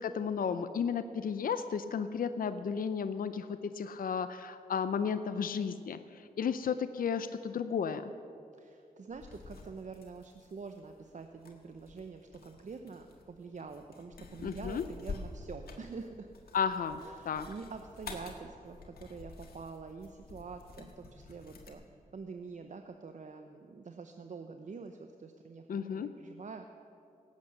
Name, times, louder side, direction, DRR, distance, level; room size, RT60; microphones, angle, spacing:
voice 1, 0.0-6.0 6.4-8.1 14.4-14.8 16.5-17.0 17.3-17.5 25.7-26.1, left 6 dB, 65° left, 11 dB, 0.6 m, -33 dB
voice 2, 8.6-16.3 17.0-21.8 22.1-26.7, right 4 dB, 50° right, 6 dB, 0.8 m, -46 dB
sound 1, 9.1-21.7, left 4 dB, 80° left, 1.6 m, -49 dB
17.5 x 8.3 x 6.5 m, 2.5 s
cardioid pair, 60°, 16 cm